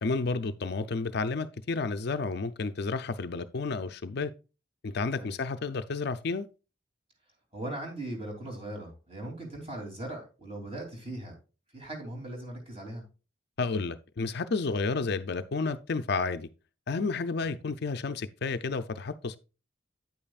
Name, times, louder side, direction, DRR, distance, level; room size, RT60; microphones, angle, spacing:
voice 1, 0.0-4.3 4.8-6.5 13.6-16.5 16.9-19.4, left 4 dB, 55° left, 0.5 m, -31 dB
voice 2, 7.5-11.4 11.7-13.0 17.4-17.6, right 1 dB, 30° right, 3.0 m, -39 dB
9.2 x 8.7 x 2.4 m
head